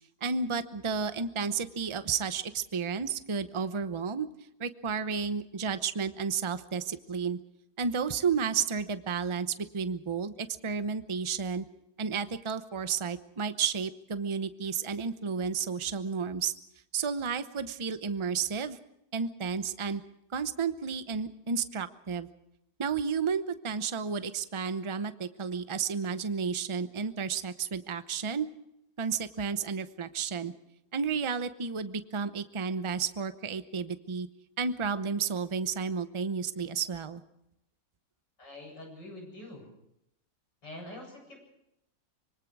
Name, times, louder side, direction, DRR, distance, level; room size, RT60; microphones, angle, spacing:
voice 1, 0.2-4.3 4.6-7.4 7.8-11.7 12.0-16.5 16.9-18.8 19.1-20.0 20.3-22.3 22.8-28.5 29.0-30.5 30.9-34.3 34.6-37.2, right 6 dB, 30° right, 11 dB, 0.6 m, -32 dB
voice 2, 38.4-39.7 40.6-41.4, left 1 dB, 90° left, 1 dB, 8.8 m, -45 dB
25.5 x 23.5 x 4.8 m, 0.81 s
omnidirectional pair, 1.9 m